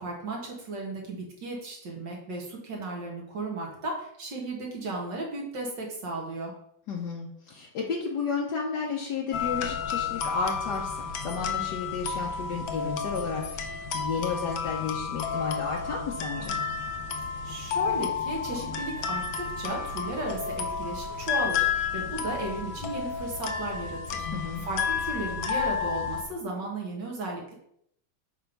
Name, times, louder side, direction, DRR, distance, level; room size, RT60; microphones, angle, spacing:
voice 1, 0.0-6.5 17.4-21.7 21.9-27.5, right 2 dB, 65° right, -1 dB, 2.6 m, -35 dB
voice 2, 6.9-16.6 24.3-24.6, left 5 dB, 65° left, -1 dB, 1.5 m, -32 dB
sound 1, 9.3-26.2, left 6 dB, 85° left, 1.6 m, -31 dB
8.0 x 3.6 x 5.4 m, 0.70 s
omnidirectional pair, 2.1 m